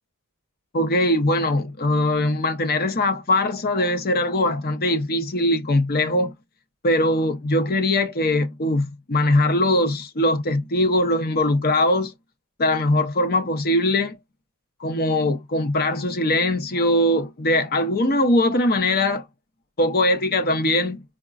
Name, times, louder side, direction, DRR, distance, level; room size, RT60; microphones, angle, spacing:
voice 1, 0.7-6.3 6.8-12.1 12.6-14.2 14.8-19.3 19.8-21.0, left 1 dB, 45° left, 0.7 m, -21 dB
4.7 x 2.1 x 2.4 m
head